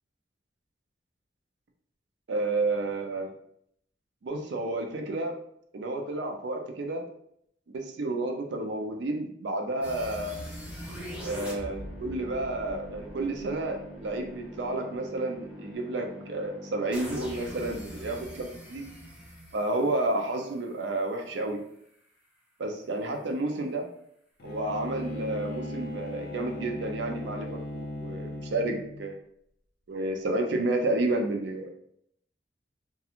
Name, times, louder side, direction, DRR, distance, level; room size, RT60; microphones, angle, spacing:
voice 1, 2.3-3.3 4.2-5.3 5.7-7.0 7.7-10.4 11.2-18.9 19.5-21.6 22.6-23.9 24.4-29.2 29.9-31.9, right 2 dB, 75° right, 3 dB, 0.4 m, -31 dB
sound 1, 9.8-20.8, equal, 5° right, 0.6 m, -42 dB
Bowed string instrument, 24.4-29.1, left 1 dB, 55° left, 0.4 m, -37 dB
2.4 x 2.3 x 2.8 m, 0.71 s
head